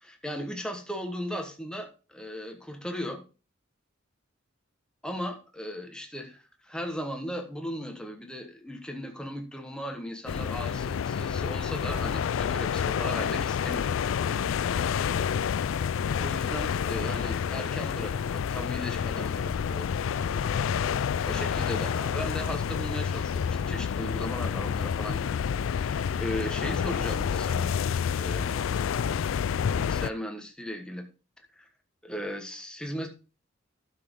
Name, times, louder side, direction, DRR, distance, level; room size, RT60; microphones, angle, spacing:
voice 1, 0.0-3.2 5.0-13.9 16.2-20.7 21.2-25.4 25.7-27.7 28.2-28.7 29.7-31.1 31.6-31.7 32.0-33.1, equal, 5° left, 4 dB, 1.4 m, -37 dB
sound 1, 10.3-30.1, left 7 dB, 80° left, 0.4 m, -29 dB
12.0 x 6.2 x 3.7 m, 0.32 s
head